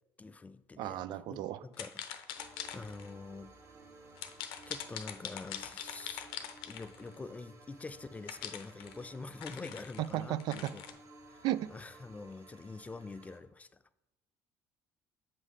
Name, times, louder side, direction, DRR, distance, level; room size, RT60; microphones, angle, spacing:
voice 1, 0.2-2.3 2.7-3.6 4.7-6.2 6.7-10.8 11.3-11.5 11.7-13.7, left 3 dB, 20° left, 14 dB, 0.3 m, -46 dB
voice 2, 0.8-1.6 10.0-10.7 11.4-11.7, right 13 dB, 65° right, 16 dB, 0.3 m, -34 dB
sound 1, 1.7-3.1 4.2-7.1 8.3-10.9, left 10 dB, 75° left, 0.6 m, -43 dB
sound 2, 2.4-13.4, right 3 dB, 40° right, 1.3 m, -57 dB
7.4 x 5.5 x 3.2 m, 0.92 s
supercardioid pair, 85°, 8 cm